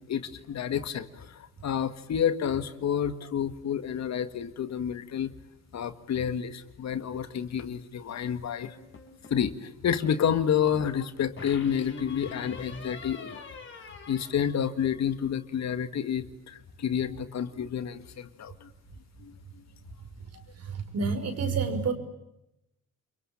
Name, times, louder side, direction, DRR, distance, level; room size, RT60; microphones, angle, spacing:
voice 1, 0.0-5.3 5.7-8.8 9.3-13.5 14.1-18.7 19.2-19.6, left 8 dB, 60° left, 11 dB, 2.0 m, -29 dB
sound 1, 8.6-9.5 11.4-15.1, left 4 dB, 40° left, 5.8 m, -44 dB
voice 2, 20.5-21.9, right 5 dB, 55° right, 7 dB, 5.5 m, -29 dB
29.0 x 23.0 x 8.8 m, 0.88 s
cardioid pair, 90°, 30 cm